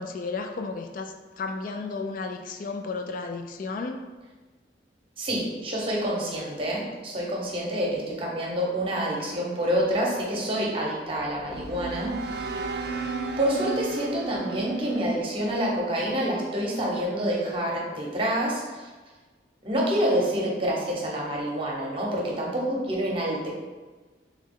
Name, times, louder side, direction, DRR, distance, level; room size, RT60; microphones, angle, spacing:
voice 1, 0.0-4.0, left 4 dB, 50° left, 5 dB, 0.3 m, -33 dB
voice 2, 5.2-12.5 13.4-18.9 19.6-23.5, equal, 30° right, -3 dB, 0.9 m, -27 dB
sound 1, 11.0-16.3, right 3 dB, 60° right, 0.4 m, -34 dB
3.7 x 3.1 x 3.6 m, 1.3 s
head